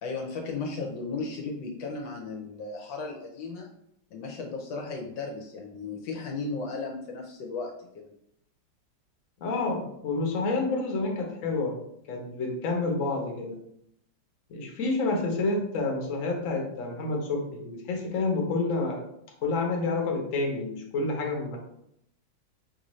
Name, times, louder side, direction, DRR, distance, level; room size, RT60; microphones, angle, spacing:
voice 1, 0.0-3.7 4.1-8.1, left 3 dB, 70° left, 1 dB, 1.2 m, -35 dB
voice 2, 9.4-11.8 12.1-13.6 14.5-19.0 19.4-21.6, left 3 dB, 55° left, 1 dB, 1.0 m, -29 dB
5.2 x 2.6 x 3.1 m, 0.74 s
omnidirectional pair, 2.2 m